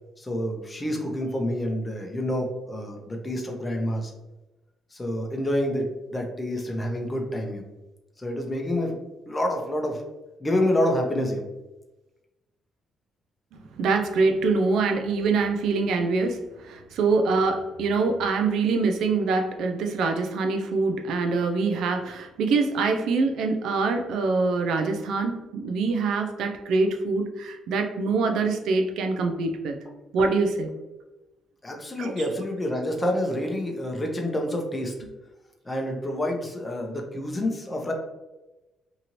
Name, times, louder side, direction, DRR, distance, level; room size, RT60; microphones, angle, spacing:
voice 1, 0.2-4.1 4.9-7.6 8.2-9.0 9.3-10.0 10.4-11.4 31.6-34.9 35.6-37.9, left 1 dB, 20° left, 1 dB, 0.7 m, -28 dB
voice 2, 13.5-29.8 30.1-30.7 32.0-32.1, right 4 dB, 80° right, 5 dB, 0.3 m, -24 dB
2.7 x 2.6 x 2.9 m, 1.1 s
cardioid pair, 90°, 0 cm